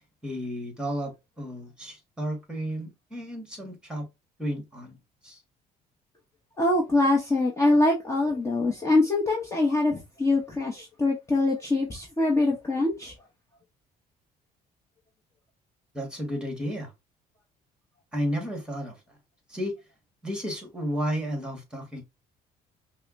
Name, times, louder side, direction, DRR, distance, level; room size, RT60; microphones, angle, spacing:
voice 1, 0.2-4.1 4.4-5.0 5.2-5.4 15.9-16.9 18.1-19.2 19.5-19.8 20.2-22.0, equal, 5° right, 1.6 m, -32 dB
voice 2, 6.6-13.1, left 2 dB, 15° left, 0.9 m, -24 dB
5.5 x 2.1 x 2.6 m
cardioid pair, 110°, 17 cm